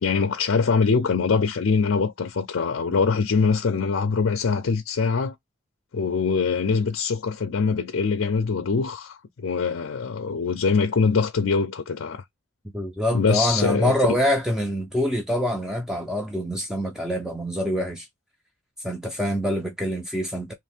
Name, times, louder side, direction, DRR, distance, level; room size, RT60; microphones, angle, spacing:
voice 1, 0.0-5.3 5.9-12.2 13.1-14.2, left 5 dB, 70° left, 0.5 m, -23 dB
voice 2, 12.7-18.1 18.8-20.5, equal, 5° right, 0.5 m, -25 dB
3.1 x 2.6 x 3.4 m
head